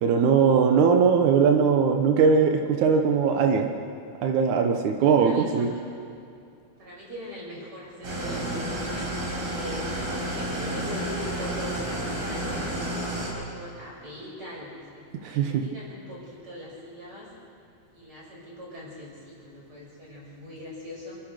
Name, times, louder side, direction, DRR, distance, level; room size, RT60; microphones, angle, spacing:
voice 1, 0.0-3.7 4.2-5.7 15.2-15.6, right 6 dB, 80° right, 4 dB, 1.7 m, -20 dB
voice 2, 5.0-5.8 6.8-17.3 17.9-21.2, left 1 dB, 25° right, -4 dB, 6.2 m, -41 dB
Engine starting / Idling, 8.0-13.3, right 1 dB, 60° right, 6.2 m, -31 dB
28.0 x 14.5 x 6.7 m, 2.5 s
omnidirectional pair, 4.9 m